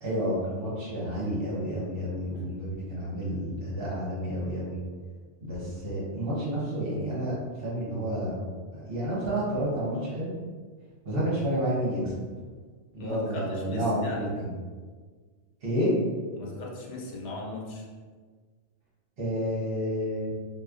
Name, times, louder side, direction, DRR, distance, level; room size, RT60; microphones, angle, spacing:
voice 1, 0.0-4.8 5.4-8.4 8.7-10.3 11.0-12.2 12.9-14.5 15.6-15.9 19.2-20.3, equal, 55° right, -7 dB, 1.3 m, -30 dB
voice 2, 13.0-14.3 16.3-17.9, left 2 dB, 80° left, -2 dB, 1.0 m, -37 dB
4.2 x 2.3 x 2.4 m, 1.5 s
omnidirectional pair, 1.2 m